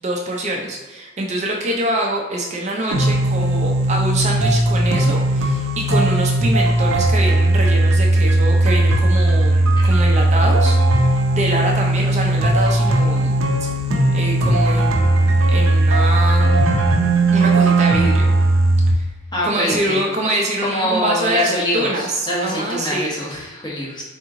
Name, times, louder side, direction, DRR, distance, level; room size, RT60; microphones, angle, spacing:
voice 1, 0.0-13.3 14.1-16.6 17.3-18.3 18.9-19.1 19.4-23.1, right 1 dB, 35° right, -1 dB, 0.5 m, -24 dB
sound 1, 2.9-18.9, right 2 dB, 80° right, 0.6 m, -17 dB
voice 2, 19.3-20.1 20.6-24.0, equal, 20° left, -5 dB, 1.0 m, -24 dB
3.5 x 3.0 x 3.7 m, 1.2 s
head